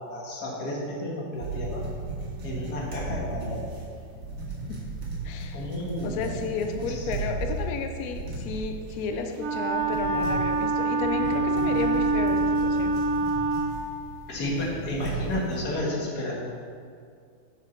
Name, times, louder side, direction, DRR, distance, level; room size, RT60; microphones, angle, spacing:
voice 1, 0.0-1.8 2.4-3.7 5.5-6.4 6.9-7.2 14.3-16.3, left 1 dB, 50° left, -3 dB, 1.9 m, -32 dB
sound 1, 1.3-15.6, right 3 dB, 55° right, 2.0 m, -36 dB
voice 2, 5.2-5.6 6.0-13.0, left 5 dB, 80° left, 5 dB, 0.8 m, -33 dB
Wind instrument woodwind instrument, 9.4-13.8, right 2 dB, 85° right, 1.8 m, -25 dB
7.2 x 5.8 x 5.3 m, 2.2 s
omnidirectional pair, 2.2 m